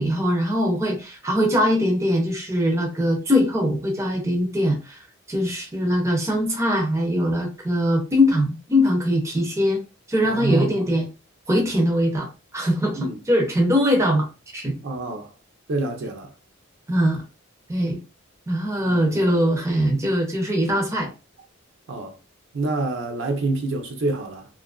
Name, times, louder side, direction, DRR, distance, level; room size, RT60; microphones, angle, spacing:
voice 1, 0.0-5.0 5.3-9.8 10.1-11.1 11.5-12.3 12.5-13.0 13.3-14.3 14.5-14.8 16.9-17.2 17.7-18.0 18.5-21.1, equal, 15° right, 0.5 m, -21 dB
voice 2, 10.2-10.9 12.9-13.2 14.8-15.3 15.7-16.3 18.8-19.4 21.9-22.1 22.5-24.5, right 2 dB, 60° right, 0.6 m, -27 dB
2.7 x 2.4 x 2.2 m
head